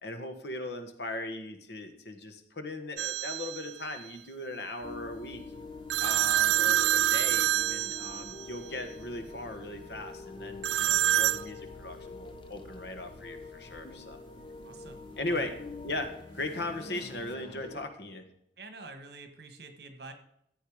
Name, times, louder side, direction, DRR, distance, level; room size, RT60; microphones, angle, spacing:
voice 1, 0.0-5.4 6.0-14.2 15.2-15.5 15.8-16.1 16.3-18.3, left 2 dB, 70° left, 7 dB, 1.6 m, -38 dB
sound 1, 3.0-3.7 5.9-8.5 10.6-11.4, right 13 dB, 85° right, 0.3 m, -26 dB
sound 2, 4.8-17.9, left 3 dB, 30° left, 0.7 m, -45 dB
voice 2, 14.6-15.6 18.6-20.1, right 3 dB, 65° right, 8 dB, 1.7 m, -47 dB
14.0 x 8.0 x 5.0 m, 0.74 s
head